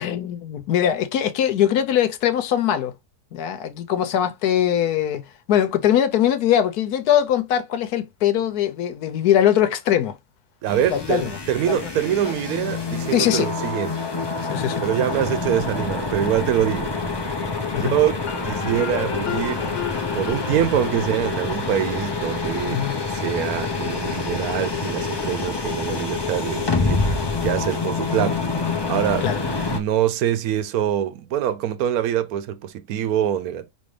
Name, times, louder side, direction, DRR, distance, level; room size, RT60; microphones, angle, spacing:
voice 1, 0.0-2.9 3.3-10.2 10.9-11.3 11.6-11.9 12.2-12.3 13.1-13.5 14.5-14.8 17.7-18.0 22.7-23.0 29.2-29.4, left 10 dB, 85° left, 1.3 m, -21 dB
voice 2, 10.6-14.0 14.8-17.0 17.7-19.6 20.1-22.8 23.1-28.4 28.9-29.3 29.7-33.7, right 10 dB, 75° right, 1.1 m, -24 dB
sound 1, 10.7-29.8, left 4 dB, 30° left, 0.5 m, -27 dB
sound 2, 18.2-22.8, left 8 dB, 65° left, 1.5 m, -34 dB
5.3 x 2.9 x 3.2 m
omnidirectional pair, 1.6 m